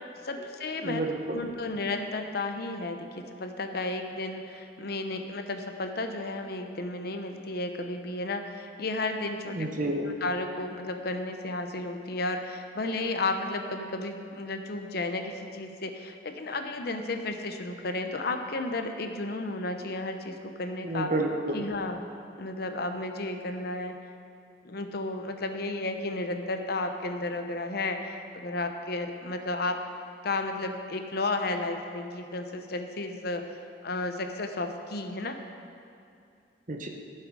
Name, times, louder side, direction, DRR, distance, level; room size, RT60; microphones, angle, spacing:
voice 1, 0.2-1.0 1.3-9.7 10.0-21.1 21.5-22.1 22.4-23.9 24.6-29.8 30.2-33.4 33.8-35.4, left 2 dB, 60° left, 6 dB, 0.8 m, -33 dB
voice 2, 0.8-1.4 9.5-10.1 20.8-21.7 36.7-36.9, right 2 dB, 45° right, 2 dB, 1.0 m, -30 dB
14.5 x 7.9 x 4.7 m, 2.4 s
head